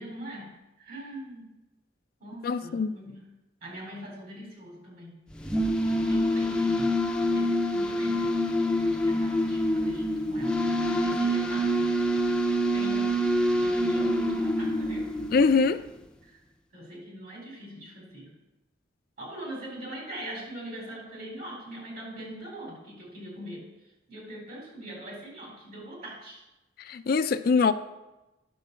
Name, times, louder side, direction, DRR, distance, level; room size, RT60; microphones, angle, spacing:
voice 1, 0.0-1.5 2.2-3.3 3.6-5.2 6.1-8.4 8.9-12.0 12.7-13.3 13.6-15.1 16.2-16.4 16.7-18.3 19.2-23.7 24.1-26.4 27.4-27.7, equal, 55° right, -2 dB, 3.9 m, -42 dB
voice 2, 2.4-3.0 15.3-15.8 26.8-27.7, left 4 dB, 55° left, 11 dB, 0.4 m, -23 dB
sound 1, 5.3-15.8, equal, 5° left, 0.5 m, -26 dB
10.0 x 4.6 x 6.8 m, 1.0 s
head